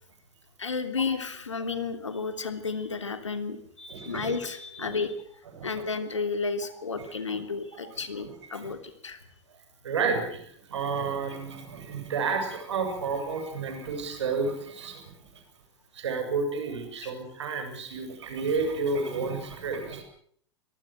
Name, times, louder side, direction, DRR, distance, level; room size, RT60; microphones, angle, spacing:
voice 1, 0.6-5.1 5.6-9.2 17.0-17.1, left 4 dB, 85° left, 9 dB, 3.1 m, -32 dB
voice 2, 3.9-4.3 4.8-4.9 5.6-5.8 8.2-8.3 9.8-10.4 10.7-15.1 15.9-20.0, right 4 dB, 70° right, 6 dB, 7.8 m, -31 dB
25.5 x 19.0 x 7.8 m, 0.64 s
figure-of-eight pair, 95°, 15 cm